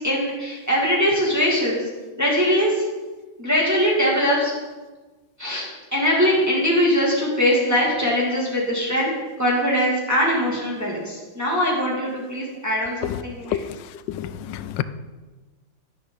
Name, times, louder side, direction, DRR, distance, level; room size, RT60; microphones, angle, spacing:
voice 1, 0.0-1.9 2.2-2.8 3.4-4.5 5.4-9.1 9.4-13.6, equal, 10° right, -4 dB, 2.5 m, -21 dB
voice 2, 14.2-14.8, left 12 dB, 75° left, 13 dB, 1.2 m, -29 dB
11.5 x 11.0 x 4.0 m, 1.3 s
omnidirectional pair, 2.1 m